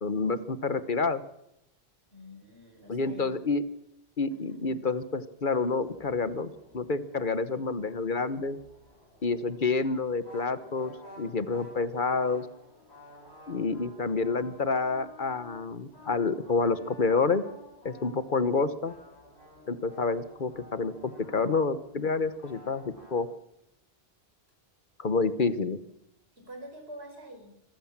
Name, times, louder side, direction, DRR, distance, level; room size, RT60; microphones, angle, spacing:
voice 1, 0.0-1.2 2.9-3.6 4.2-8.6 9.2-12.5 13.5-17.4 17.8-18.9 19.7-23.3 25.0-25.8, left 4 dB, 55° left, 13 dB, 1.2 m, -28 dB
voice 2, 2.1-3.3 4.3-4.7 26.4-27.5, equal, 85° right, 4 dB, 5.3 m, -46 dB
sound 1, 5.8-23.2, left 1 dB, 90° left, 6.2 m, -52 dB
25.0 x 14.5 x 7.4 m, 0.82 s
omnidirectional pair, 1.0 m